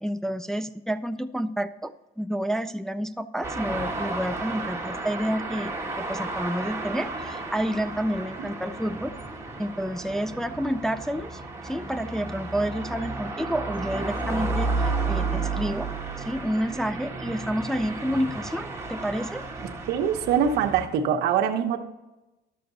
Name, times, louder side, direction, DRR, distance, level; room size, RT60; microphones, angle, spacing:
voice 1, 0.0-9.2 9.6-15.9 16.2-19.4, equal, 5° left, 8 dB, 0.3 m, -29 dB
sound 1, 3.4-20.9, right 3 dB, 15° right, 1.7 m, -32 dB
voice 2, 19.9-21.8, right 8 dB, 75° right, 6 dB, 1.0 m, -23 dB
12.0 x 6.8 x 3.9 m, 1.0 s
cardioid pair, 110°, 17 cm